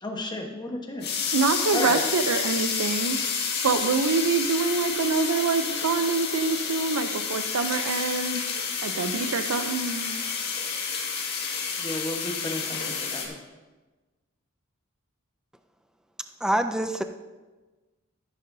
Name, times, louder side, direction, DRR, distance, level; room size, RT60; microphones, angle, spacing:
voice 1, 0.0-1.1 1.7-2.0 11.8-13.3, left 1 dB, 20° left, 1 dB, 1.1 m, -32 dB
sound 1, 1.0-13.3, left 6 dB, 50° left, 1.8 m, -30 dB
voice 2, 1.3-3.2 3.6-8.5 8.8-10.2, right 4 dB, 90° right, 7 dB, 0.6 m, -25 dB
voice 3, 16.4-17.0, right 1 dB, 5° right, 8 dB, 0.3 m, -25 dB
13.5 x 11.0 x 2.7 m, 1.2 s
head